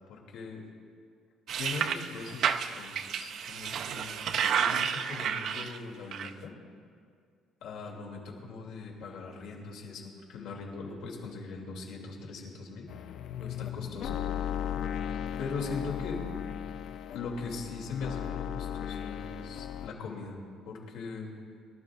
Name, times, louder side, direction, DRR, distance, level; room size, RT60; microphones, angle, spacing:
voice 1, 0.1-0.6 1.6-6.5 7.6-12.9 13.3-14.5 15.4-16.2 17.1-20.4 20.6-21.3, left 4 dB, 75° left, -1 dB, 2.9 m, -40 dB
sound 1, 1.5-5.8 6.1-6.3, right 8 dB, 55° right, 0.5 m, -31 dB
sound 2, 12.9-19.9, left 9 dB, 60° left, 0.4 m, -36 dB
23.5 x 12.5 x 2.6 m, 2.2 s
cardioid pair, 140°, 0 cm